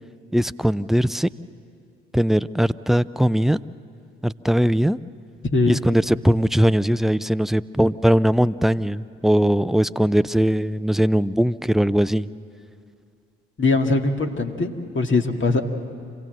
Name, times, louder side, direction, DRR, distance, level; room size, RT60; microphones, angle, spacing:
voice 1, 0.3-1.3 2.1-3.6 4.2-5.0 5.7-12.3, equal, ahead, 15 dB, 0.4 m, -20 dB
voice 2, 5.4-5.8 13.6-15.6, left 3 dB, 40° left, 4 dB, 2.0 m, -21 dB
26.5 x 17.0 x 7.8 m, 2.4 s
hypercardioid pair, 50°, 31 cm